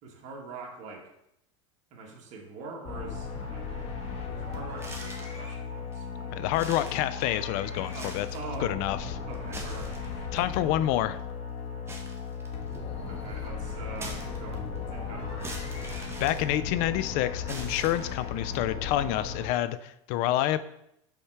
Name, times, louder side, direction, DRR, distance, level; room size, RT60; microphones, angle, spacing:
voice 1, 0.0-1.1 1.9-3.7 4.3-6.7 7.9-8.9 9.3-10.3 13.1-15.5, right 3 dB, 50° right, -1 dB, 1.6 m, -44 dB
sound 1, 2.9-19.5, left 5 dB, 40° left, 1.5 m, -36 dB
sound 2, 4.7-5.4 5.9-6.0 6.5-7.5 7.8-8.5 9.3-10.4 11.9-12.9 14.0-14.8 15.4-17.0 17.5-18.4, right 2 dB, 15° right, 1.4 m, -43 dB
voice 2, 6.3-8.3 8.6-9.0 10.3-11.2 16.2-20.6, left 13 dB, 60° left, 14 dB, 0.5 m, -28 dB
5.6 x 4.4 x 4.8 m, 0.78 s
supercardioid pair, 105°, 16 cm